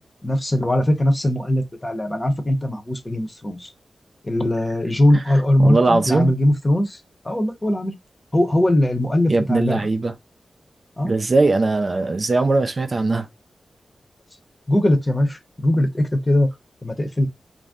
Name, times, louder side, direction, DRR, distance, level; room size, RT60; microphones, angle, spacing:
voice 1, 0.0-3.7 4.2-7.0 7.2-8.0 8.3-9.8 11.0-11.1 14.7-16.5 16.8-17.3, left 1 dB, 20° left, 0.8 m, -20 dB
voice 2, 5.6-6.3 9.3-10.1 11.0-13.3, right 3 dB, 45° right, 0.4 m, -20 dB
2.6 x 2.1 x 3.5 m
wide cardioid pair, 85°, 0 cm